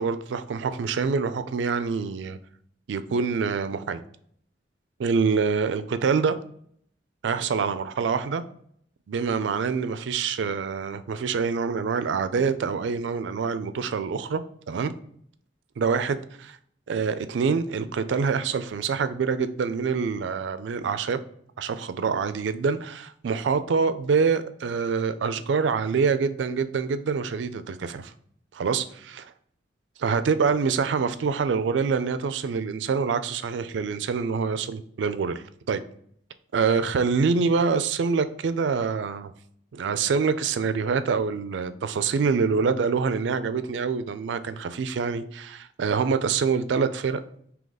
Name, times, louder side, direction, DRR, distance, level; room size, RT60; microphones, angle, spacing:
voice 1, 0.0-2.4 2.9-4.0 5.0-6.4 7.2-8.4 9.1-14.4 14.7-14.9 15.8-16.2 16.9-21.2 21.6-28.1 28.5-29.3 30.0-35.8 36.5-39.3 39.7-47.2, right 5 dB, 85° right, 0.4 m, -25 dB
3.9 x 2.8 x 3.6 m
head